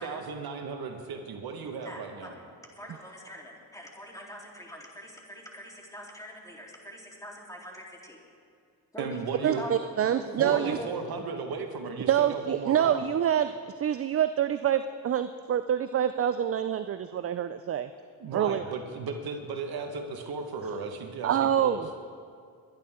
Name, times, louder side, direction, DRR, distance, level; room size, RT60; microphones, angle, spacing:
voice 1, 0.0-2.4 9.0-9.6 10.4-13.0 18.2-21.8, right 5 dB, 60° right, 4 dB, 1.7 m, -35 dB
voice 2, 1.8-2.5 2.8-8.2 8.9-9.7 10.1-11.1, equal, 10° left, -2 dB, 3.7 m, -42 dB
voice 3, 9.4-10.8 12.1-13.5 13.8-17.9 18.3-18.6 21.2-21.9, right 10 dB, 35° right, 11 dB, 0.5 m, -26 dB
22.0 x 11.0 x 3.7 m, 2.3 s
supercardioid pair, 70°, 42 cm